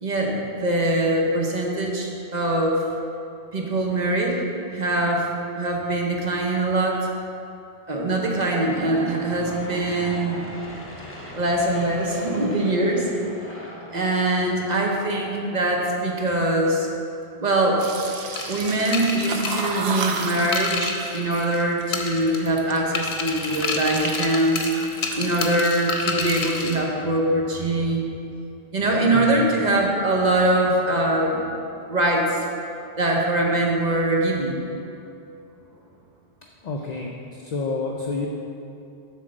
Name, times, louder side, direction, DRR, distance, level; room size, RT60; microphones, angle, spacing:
voice 1, 0.0-2.8 3.5-4.4 4.7-5.3 5.6-7.0 7.9-10.4 11.3-13.1 13.9-16.9 17.4-17.9 18.5-28.0 28.7-31.4 31.9-32.4 33.0-34.6, right 1 dB, 45° right, -1 dB, 0.9 m, -23 dB
Aircraft / Engine, 8.0-15.9, equal, 15° left, 0.9 m, -40 dB
sound 1, 17.8-22.9 23.3-24.2 24.5-25.7, right 4 dB, 70° right, 0.9 m, -33 dB
sound 2, 18.4-21.6 21.9-22.6 22.9-26.8, left 4 dB, 85° left, 1.0 m, -29 dB
voice 2, 29.1-29.5 36.6-38.3, left 3 dB, 50° left, 0 dB, 0.6 m, -29 dB
7.7 x 3.7 x 6.4 m, 2.7 s
omnidirectional pair, 1.0 m